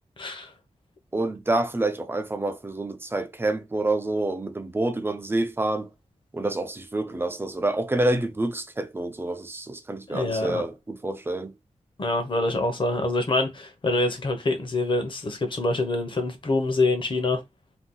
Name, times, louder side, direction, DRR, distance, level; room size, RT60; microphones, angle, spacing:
voice 1, 0.2-0.5 10.1-10.6 12.0-17.4, left 2 dB, 45° left, 0.9 m, -25 dB
voice 2, 1.1-5.9 6.3-11.5, right 2 dB, 20° right, 0.5 m, -27 dB
2.8 x 2.3 x 3.7 m
wide cardioid pair, 110°, 12 cm